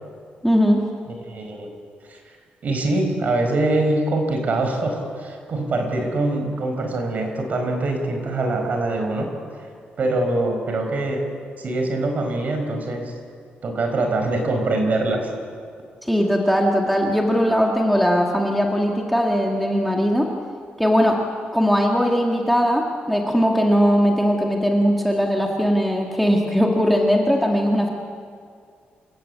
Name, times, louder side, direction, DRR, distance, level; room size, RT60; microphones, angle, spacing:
voice 1, 0.4-0.8 16.0-20.3 20.8-21.2 21.5-27.9, equal, ahead, 0 dB, 1.9 m, -19 dB
voice 2, 1.3-1.7 2.1-2.2 2.6-9.7 10.0-11.2 11.6-13.1 13.6-15.3, right 2 dB, 45° right, 4 dB, 4.6 m, -23 dB
27.5 x 16.0 x 8.6 m, 2.2 s
wide cardioid pair, 150°, 4 cm